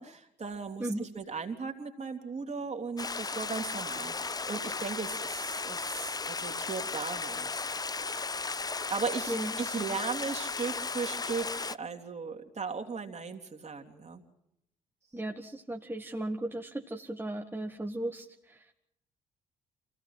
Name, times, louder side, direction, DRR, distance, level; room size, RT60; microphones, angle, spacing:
voice 1, 0.0-7.7 8.9-14.2, right 5 dB, 35° right, 4 dB, 3.2 m, -37 dB
Stream, 3.0-11.8, left 4 dB, 20° left, 0.7 m, -35 dB
voice 2, 9.3-9.6 15.1-18.6, right 1 dB, 10° right, 1 dB, 1.8 m, -36 dB
27.5 x 16.5 x 5.8 m, 0.78 s
hypercardioid pair, 50°, 20 cm